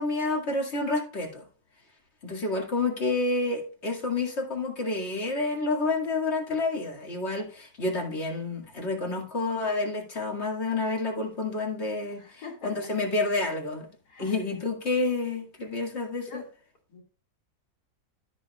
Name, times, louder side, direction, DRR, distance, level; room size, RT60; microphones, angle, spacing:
voice 1, 0.0-1.4 2.2-13.9 14.2-16.4, left 3 dB, 45° left, 2.4 m, -29 dB
voice 2, 12.1-12.9 14.1-14.4 16.3-16.5 16.9-17.0, left 3 dB, 85° left, 2.8 m, -44 dB
13.5 x 7.0 x 2.4 m
omnidirectional pair, 1.7 m